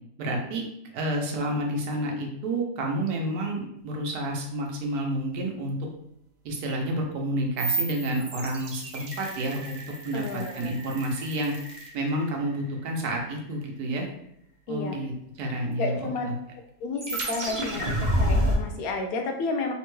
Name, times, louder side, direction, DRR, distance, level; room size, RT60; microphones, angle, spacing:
voice 1, 0.2-0.7 0.9-5.8 6.4-11.5 11.9-14.1 14.7-15.1 15.4-16.0 16.2-16.3, right 1 dB, 85° right, 1 dB, 1.2 m, -29 dB
sound 1, 7.6-12.6 17.0-18.6, right 1 dB, 50° right, 0.5 m, -30 dB
voice 2, 10.1-10.7 14.7-15.0 15.8-16.3 16.8-19.7, left 3 dB, 75° left, 3 dB, 1.0 m, -31 dB
3.6 x 2.2 x 3.0 m, 0.76 s
omnidirectional pair, 1.6 m